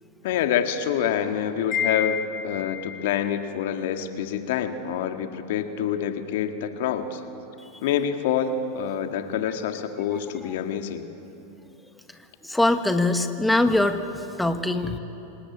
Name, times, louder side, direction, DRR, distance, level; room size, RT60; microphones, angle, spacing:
voice 1, 0.2-2.2 2.4-7.2 7.8-11.0, left 8 dB, 65° left, 7 dB, 1.7 m, -27 dB
Wind chime, 1.7-3.1, left 9 dB, 35° left, 4.5 m, -29 dB
voice 2, 12.4-15.0, left 2 dB, 5° left, 7 dB, 1.5 m, -22 dB
26.0 x 20.5 x 8.6 m, 2.8 s
hypercardioid pair, 100°, 0 cm